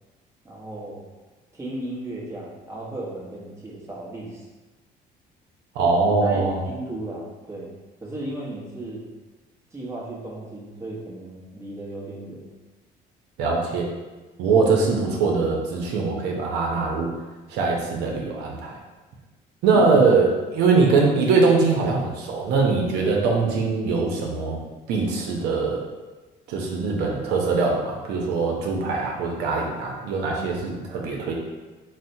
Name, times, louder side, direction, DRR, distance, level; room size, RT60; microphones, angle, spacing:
voice 1, 0.4-1.1 1.5-4.5 6.2-7.7 8.0-9.0 9.7-12.5 19.7-20.0, right 1 dB, 15° right, -5 dB, 0.9 m, -35 dB
voice 2, 5.7-6.6 13.4-13.9 14.4-17.1 17.5-18.7 19.6-24.6 24.9-25.8 26.5-31.3, right 4 dB, 85° right, -1 dB, 0.6 m, -22 dB
4.1 x 2.0 x 2.6 m, 1.2 s
cardioid pair, 110°, 17 cm